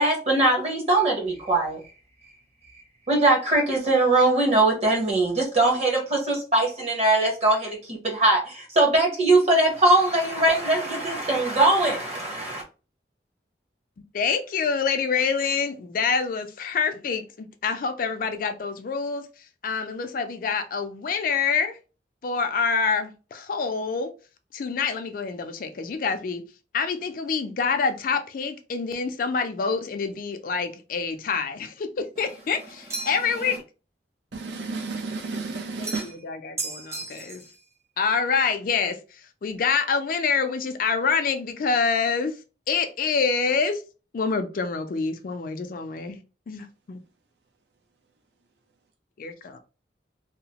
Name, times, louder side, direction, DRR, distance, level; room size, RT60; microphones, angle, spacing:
voice 1, 0.0-1.8 3.1-12.6, right 2 dB, 35° right, 1.0 m, -21 dB
voice 2, 14.1-21.8 22.2-24.1 24.5-26.4 26.7-33.6 35.8-37.4 38.0-42.4 42.7-43.8 44.1-46.2 46.5-47.0 49.2-49.6, left 5 dB, 50° left, 0.4 m, -26 dB
sound 1, 32.9-33.4 35.8-36.2 36.6-37.5, right 3 dB, 15° right, 0.6 m, -34 dB
voice 3, 34.4-36.1, right 3 dB, 75° right, 0.6 m, -32 dB
2.8 x 2.0 x 2.8 m
head